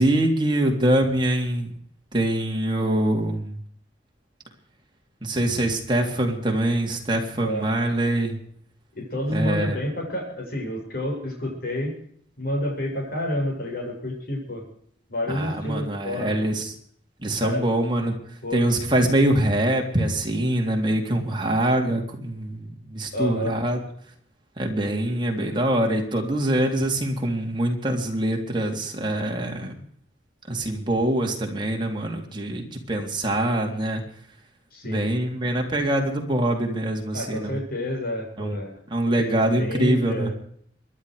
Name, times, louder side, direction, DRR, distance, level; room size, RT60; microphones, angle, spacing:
voice 1, 0.0-1.7 2.1-3.6 5.2-8.4 9.3-9.8 15.3-16.7 17.2-23.8 24.6-29.8 30.5-34.0 34.8-37.6 38.4-38.6 38.9-40.3, right 1 dB, 25° right, 1 dB, 3.4 m, -24 dB
voice 2, 8.9-11.9 12.4-14.7 15.1-16.4 17.4-17.6 18.4-18.7 23.1-23.6 34.7-35.1 37.1-38.8 39.2-40.3, left 1 dB, 55° left, 0 dB, 7.9 m, -29 dB
24.5 x 11.5 x 5.1 m, 0.63 s
head